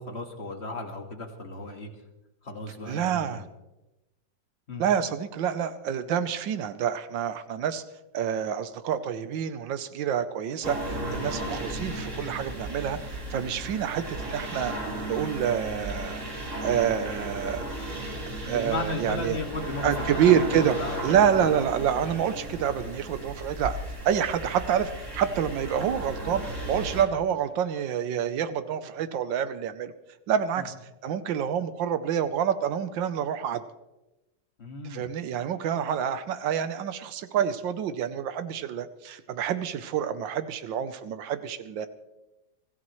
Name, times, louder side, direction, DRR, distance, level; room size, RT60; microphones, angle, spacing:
voice 1, 0.0-1.9 2.4-3.5 4.7-4.8 18.5-21.2 30.6-30.7 34.6-35.1, left 2 dB, 35° left, 2 dB, 2.1 m, -35 dB
voice 2, 2.9-3.4 4.8-7.8 8.1-14.8 15.1-16.2 16.6-17.6 18.4-19.4 19.8-20.7 21.0-23.8 24.0-26.4 26.7-29.9 30.3-30.7 31.0-33.6 34.9-41.9, right 8 dB, 85° right, 11 dB, 1.6 m, -27 dB
sound 1, 10.6-27.0, right 1 dB, 40° right, 2.9 m, -35 dB
25.5 x 15.0 x 3.2 m, 0.99 s
omnidirectional pair, 2.0 m